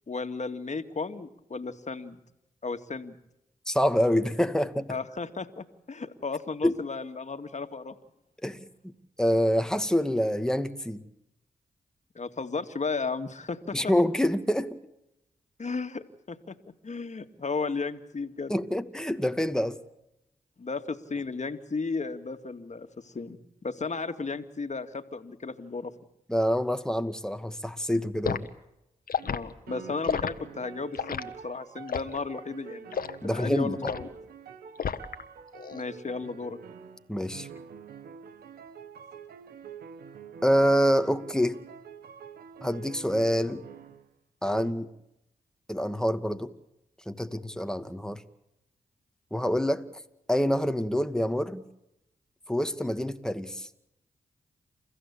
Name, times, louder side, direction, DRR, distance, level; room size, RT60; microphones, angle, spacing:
voice 1, 0.1-2.2 2.6-3.2 4.9-8.0 12.1-13.9 15.6-16.6 16.8-18.5 20.6-25.9 29.2-33.0 33.2-34.1 35.7-36.6, left 4 dB, 50° left, 8 dB, 2.4 m, -34 dB
voice 2, 3.7-4.9 6.6-6.7 8.4-8.9 9.2-11.0 13.7-14.8 18.5-19.8 26.3-28.5 33.2-33.9 37.1-37.5 40.4-41.6 42.6-43.6 44.4-44.9 45.7-46.5 47.1-48.2 49.3-49.9 50.3-51.6 52.5-53.7, equal, 5° left, 9 dB, 2.3 m, -26 dB
Liquid, 28.2-28.5 29.1-29.4 30.0-30.3 31.0-31.3 31.9-32.2 32.9-33.2 33.8-34.1 34.8-35.2 35.6-35.8, left 7 dB, 70° left, 1.5 m, -30 dB
sound 1, 29.2-29.4 29.7-44.1 44.5-44.7, right 7 dB, 90° right, 1.5 m, -46 dB
29.0 x 15.5 x 8.6 m, 0.86 s
supercardioid pair, 45°, 15 cm